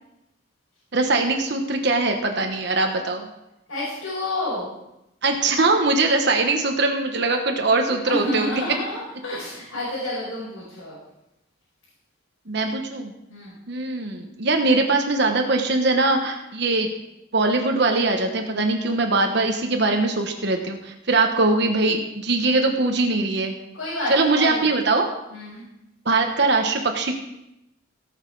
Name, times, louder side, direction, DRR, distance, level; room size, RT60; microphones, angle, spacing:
voice 1, 0.9-3.3 5.2-8.6 12.5-13.1 13.7-16.9 17.3-23.6 24.1-25.1 26.0-27.2, right 3 dB, 55° right, 4 dB, 1.1 m, -21 dB
voice 2, 3.7-4.7 8.1-11.0 13.3-13.6 23.7-24.7 25.3-25.6, left 1 dB, 70° left, -9 dB, 5.5 m, -29 dB
17.5 x 6.5 x 4.8 m, 0.88 s
head